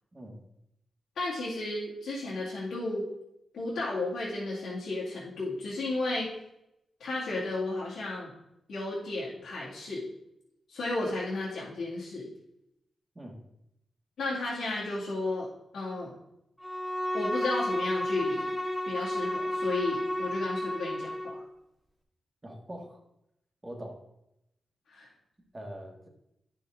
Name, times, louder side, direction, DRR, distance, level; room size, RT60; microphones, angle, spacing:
voice 1, 1.2-3.1 3.5-6.3 7.0-8.3 8.7-10.1 10.7-12.3 14.2-15.5 15.7-16.1 17.1-18.5 18.9-21.4 24.9-25.1, left 2 dB, 85° left, -9 dB, 2.3 m, -33 dB
Bowed string instrument, 16.6-21.4, left 1 dB, ahead, 2.3 m, -32 dB
voice 2, 22.4-23.0 23.6-24.0 25.5-26.1, equal, 25° right, 1 dB, 2.0 m, -42 dB
10.0 x 5.6 x 3.8 m, 0.83 s
cardioid pair, 65°, 0 cm